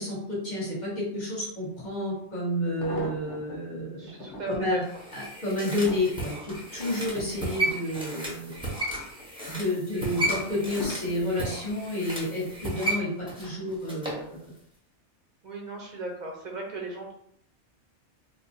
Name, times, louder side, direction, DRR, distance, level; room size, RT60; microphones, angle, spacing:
voice 1, 0.0-3.9 4.5-4.8 5.1-8.5 9.5-14.2, left 1 dB, 40° left, -6 dB, 1.5 m, -30 dB
sound 1, 1.8-1.9 2.5-3.6 4.1-4.7 5.3-8.7 9.1-9.6 10.2-11.6 12.3-12.7 13.0-13.1, left 2 dB, 80° left, 1.2 m, -41 dB
voice 2, 4.0-4.8 15.4-17.1, right 2 dB, 45° right, 0 dB, 0.9 m, -36 dB
sound 2, 4.8-14.2 14.6-14.7, right 1 dB, 5° right, 0.9 m, -34 dB
4.6 x 2.3 x 2.6 m, 0.69 s
omnidirectional pair, 1.2 m